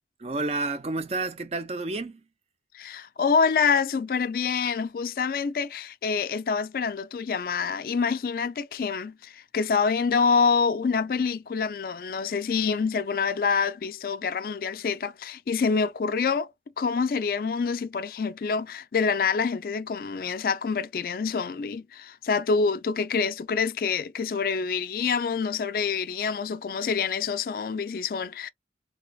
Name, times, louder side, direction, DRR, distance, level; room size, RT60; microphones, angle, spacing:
voice 1, 0.2-2.2, right 2 dB, 35° right, 0.4 m, -30 dB
voice 2, 2.7-16.5 16.8-28.5, left 5 dB, 50° left, 0.3 m, -26 dB
3.3 x 3.1 x 2.3 m
head